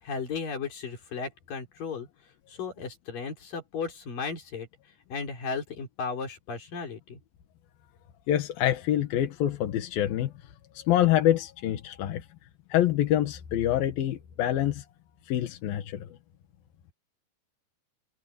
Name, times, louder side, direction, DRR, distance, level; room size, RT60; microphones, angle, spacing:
voice 1, 0.0-2.1 2.5-4.7 5.1-7.2, left 5 dB, 45° left, 6.1 m, -35 dB
voice 2, 8.3-10.3 10.7-12.3 12.7-14.8 15.3-16.1, left 12 dB, 65° left, 2.8 m, -26 dB
omnidirectional pair, 5.4 m